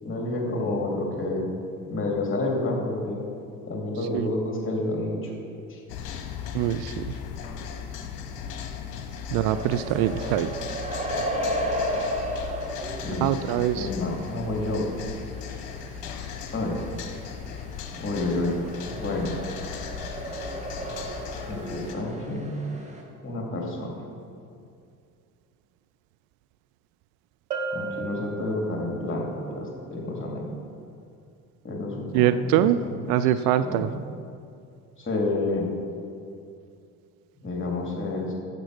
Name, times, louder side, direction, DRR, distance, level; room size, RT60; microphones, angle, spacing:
voice 1, 0.0-1.5 1.9-3.2 3.7-5.3 5.7-5.8 13.0-13.3 13.8-14.9 16.5-16.8 18.0-18.6 19.0-19.3 21.5-22.6 23.2-24.0 27.7-30.5 31.6-33.3 33.6-33.9 35.0-35.7 37.4-38.3, left 2 dB, 25° left, -1 dB, 2.9 m, -29 dB
sound 1, 5.9-22.0, left 8 dB, 55° left, 1.2 m, -37 dB
voice 2, 6.5-7.0 9.3-10.5 13.2-13.9 32.1-32.8 33.1-33.9, right 12 dB, 50° right, 11 dB, 0.5 m, -23 dB
sound 2, 9.5-23.0, equal, 15° right, 2.0 m, -34 dB
Bell, 27.5-29.1, right 4 dB, 85° right, 1.1 m, -34 dB
15.0 x 7.3 x 4.9 m, 2.4 s
figure-of-eight pair, 60°, 45 cm